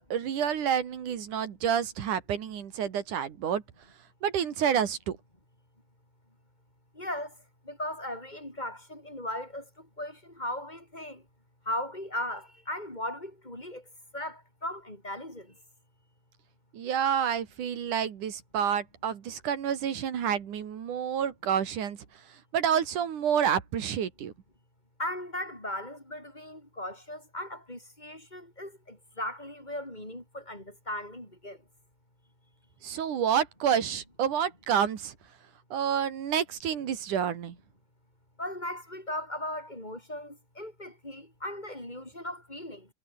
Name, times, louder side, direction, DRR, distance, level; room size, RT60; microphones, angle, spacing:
voice 1, 0.0-3.6 4.2-5.2 16.7-22.0 22.5-24.3 32.8-35.1 35.7-37.6, right 8 dB, 60° right, 3.4 m, -29 dB
voice 2, 6.9-7.3 7.6-11.2 11.6-13.8 14.1-15.5 25.0-31.6 38.4-42.9, left 1 dB, 10° left, 7.0 m, -37 dB
omnidirectional pair, 4.4 m